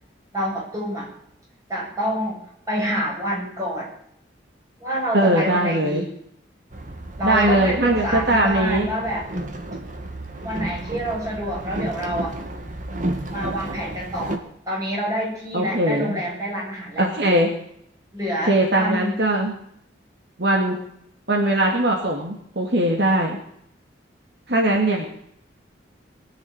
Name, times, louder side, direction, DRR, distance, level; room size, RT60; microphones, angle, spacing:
voice 1, 0.3-1.1 1.7-3.9 4.8-6.1 7.2-9.2 10.4-12.3 13.3-14.4 14.7-17.0 18.1-19.2, equal, 20° right, -5 dB, 7.8 m, -27 dB
voice 2, 5.1-6.1 7.2-8.9 15.5-16.2 17.0-17.5 18.5-19.6 20.4-20.8 21.3-23.4 24.5-25.1, right 1 dB, 60° right, 0 dB, 2.4 m, -20 dB
Boat Water vehicle, 6.7-14.4, right 1 dB, 40° right, 1.9 m, -32 dB
20.5 x 7.4 x 8.8 m, 0.70 s
head